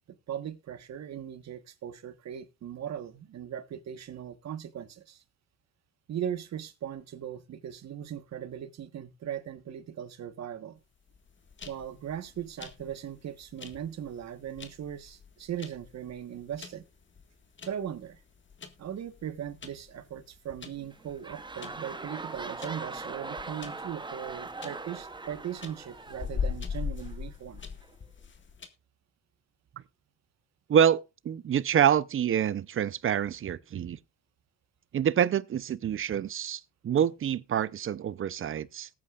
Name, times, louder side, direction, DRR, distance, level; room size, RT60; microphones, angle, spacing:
voice 1, 0.3-5.2 6.1-10.8 11.6-16.8 17.7-18.2 18.8-27.6, right 9 dB, 60° right, 1.3 m, -39 dB
sound 1, 11.1-28.7, left 6 dB, 40° left, 1.7 m, -41 dB
sound 2, 20.8-27.1 27.8-27.9, right 3 dB, 15° right, 0.9 m, -41 dB
voice 2, 30.7-34.0 34.9-38.9, right 9 dB, 45° right, 0.6 m, -26 dB
19.0 x 8.6 x 2.4 m
cardioid pair, 90°, 30 cm